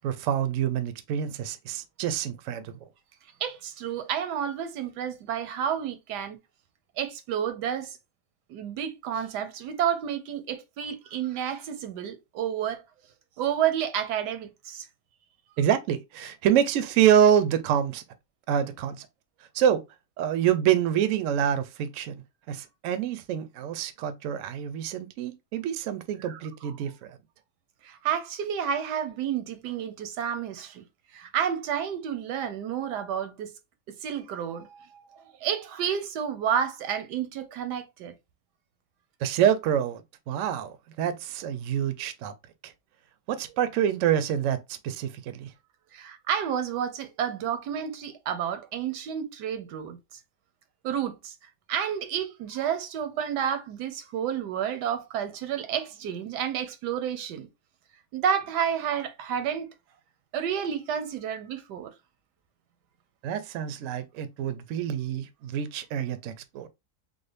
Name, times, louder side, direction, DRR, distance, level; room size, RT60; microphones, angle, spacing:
voice 1, 0.0-2.8 15.6-18.0 18.5-19.1 19.5-19.8 20.2-22.2 22.5-27.2 39.2-42.3 42.6-42.7 43.3-45.5 63.2-66.7, right 9 dB, 70° right, 0.8 m, -26 dB
voice 2, 3.4-6.4 7.0-8.0 8.5-12.8 13.4-14.9 26.2-26.7 27.8-30.8 31.1-33.5 33.9-38.1 45.9-50.0 50.8-51.3 51.7-57.5 58.1-59.7 60.3-61.9, right 8 dB, 90° right, 1.3 m, -30 dB
3.6 x 2.0 x 3.2 m
omnidirectional pair, 1.8 m